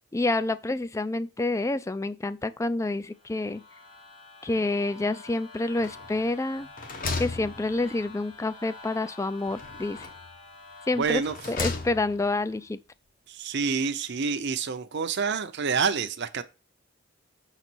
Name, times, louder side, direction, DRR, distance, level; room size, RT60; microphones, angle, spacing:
voice 1, 0.1-3.6 4.4-6.7 7.2-10.1 10.9-11.2 11.5-12.8, left 2 dB, 15° left, 0.3 m, -28 dB
sound 1, 3.0-12.7, left 2 dB, 70° left, 2.5 m, -48 dB
sound 2, 5.8-6.3 6.6-8.2 9.5-10.3 11.0-12.3, left 3 dB, 45° left, 1.0 m, -35 dB
voice 2, 10.9-11.3 13.3-16.4, right 5 dB, 55° right, 0.6 m, -28 dB
6.9 x 4.1 x 6.1 m
head